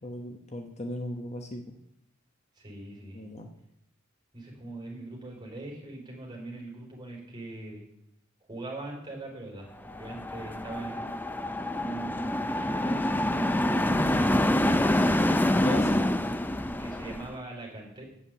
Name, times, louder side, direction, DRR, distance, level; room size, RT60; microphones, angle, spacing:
voice 1, 0.0-1.7 3.1-3.5 15.5-16.0, left 1 dB, 30° left, 4 dB, 1.0 m, -36 dB
voice 2, 2.5-3.2 4.3-7.9 8.5-11.1 11.7-15.0 16.8-18.0, right 2 dB, 20° right, -2 dB, 4.4 m, -41 dB
sound 1, 9.9-17.3, left 1 dB, 10° left, 0.5 m, -26 dB
8.5 x 7.4 x 8.8 m, 0.76 s
head